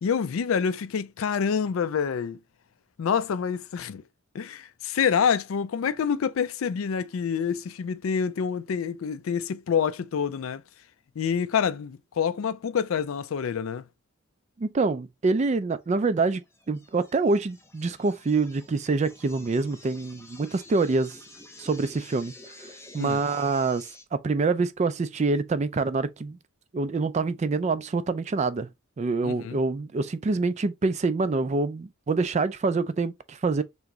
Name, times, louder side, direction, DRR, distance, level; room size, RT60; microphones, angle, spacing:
voice 1, 0.0-2.4 3.0-4.0 4.3-10.6 11.2-13.8 23.0-23.2 29.2-29.6, left 7 dB, 80° left, 0.4 m, -27 dB
voice 2, 14.6-16.4 16.7-21.2 21.6-22.3 22.9-23.9 24.2-26.4 26.7-28.7 29.0-33.6, right 3 dB, 35° right, 0.3 m, -26 dB
sound 1, 16.3-24.0, left 2 dB, 15° left, 1.1 m, -49 dB
3.4 x 3.0 x 3.8 m
head